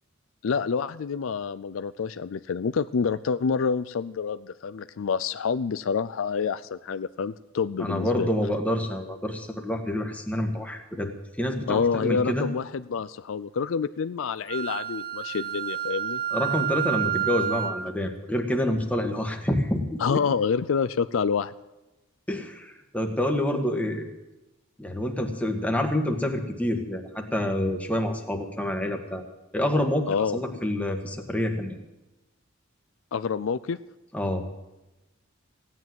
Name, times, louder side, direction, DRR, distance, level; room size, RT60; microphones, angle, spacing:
voice 1, 0.4-8.3 11.7-16.2 20.0-21.5 30.1-30.6 33.1-33.8, left 6 dB, 70° left, 14 dB, 0.4 m, -27 dB
voice 2, 7.8-12.5 16.3-20.2 22.3-24.1 24.8-29.2 29.5-31.8 34.1-34.5, left 1 dB, 5° left, 3 dB, 1.6 m, -27 dB
Wind instrument woodwind instrument, 14.5-17.9, right 10 dB, 50° right, 0.7 m, -29 dB
16.0 x 9.7 x 7.8 m, 1.0 s
head